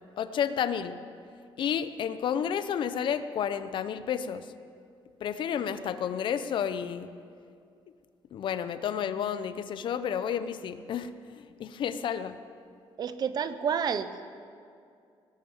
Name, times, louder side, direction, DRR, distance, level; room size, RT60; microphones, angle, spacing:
voice 1, 0.2-1.0 1.6-4.4 5.2-7.1 8.3-11.1 11.3-12.4, left 8 dB, 60° left, 12 dB, 0.7 m, -31 dB
voice 2, 13.0-14.3, right 7 dB, 45° right, 12 dB, 0.7 m, -30 dB
18.5 x 11.0 x 7.2 m, 2.4 s
cardioid pair, 155°, 9 cm